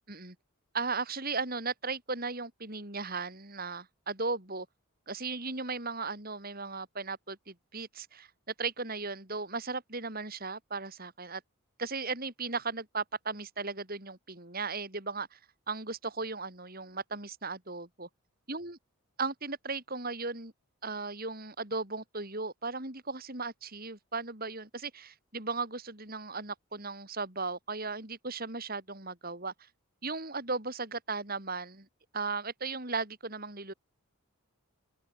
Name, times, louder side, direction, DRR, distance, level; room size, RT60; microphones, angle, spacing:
voice 1, 0.7-4.7 5.1-11.4 11.8-15.4 15.7-18.1 18.5-18.8 19.2-20.5 20.8-29.7 30.0-31.9 32.1-33.7, right 4 dB, 40° right, 4.6 m, -36 dB
open air
head